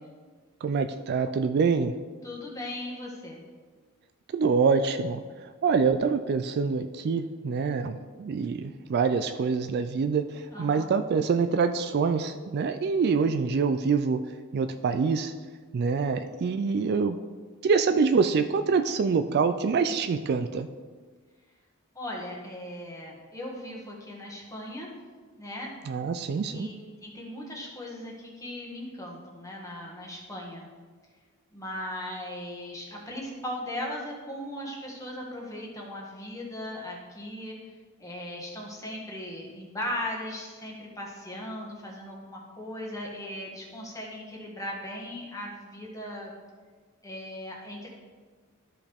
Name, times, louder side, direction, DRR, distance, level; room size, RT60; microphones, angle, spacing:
voice 1, 0.6-1.9 4.3-14.2 14.5-15.3 15.7-17.2 17.6-20.7 25.9-26.7, right 5 dB, 50° right, 10 dB, 0.3 m, -25 dB
voice 2, 2.2-3.4 10.5-10.9 21.9-24.9 25.4-25.7 26.5-26.7 27.0-30.7 31.5-37.6 38.0-46.3 47.0-47.9, left 1 dB, 15° left, -2 dB, 1.5 m, -38 dB
13.0 x 5.0 x 3.5 m, 1.5 s
head